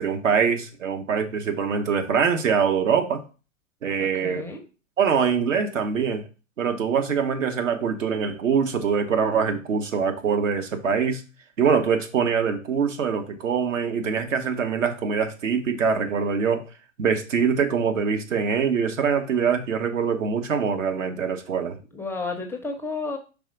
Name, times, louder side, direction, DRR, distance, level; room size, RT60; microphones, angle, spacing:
voice 1, 0.0-3.2 3.8-4.4 5.0-6.2 6.6-11.2 11.6-16.6 17.0-21.8, right 6 dB, 75° right, 1.1 m, -23 dB
voice 2, 4.0-4.6 21.9-23.2, left 3 dB, 5° left, 0.5 m, -32 dB
5.4 x 3.5 x 5.0 m
figure-of-eight pair, 105°, 40 cm